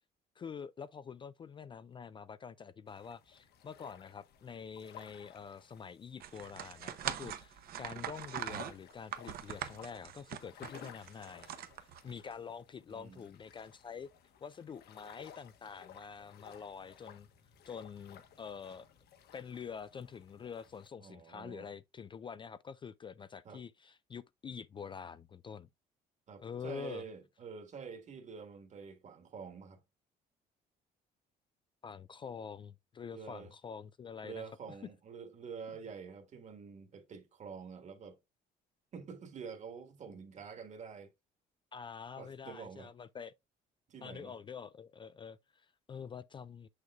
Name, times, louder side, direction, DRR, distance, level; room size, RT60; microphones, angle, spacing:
voice 1, 0.4-11.5 12.0-14.1 14.4-17.3 17.7-18.9 19.3-25.7 26.4-27.0 31.8-34.4 41.7-43.3 44.0-46.7, left 6 dB, 30° left, 0.3 m, -46 dB
sound 1, 2.9-20.9, left 8 dB, 70° left, 1.2 m, -57 dB
sound 2, 6.2-12.3, right 10 dB, 65° right, 0.8 m, -42 dB
voice 2, 12.9-13.2 21.0-21.7 23.4-23.6 26.3-29.8 33.1-33.5 34.2-38.2 38.9-41.1 42.2-42.9 43.9-44.3, right 6 dB, 45° right, 1.6 m, -47 dB
7.0 x 6.5 x 2.3 m
cardioid pair, 110°, 17 cm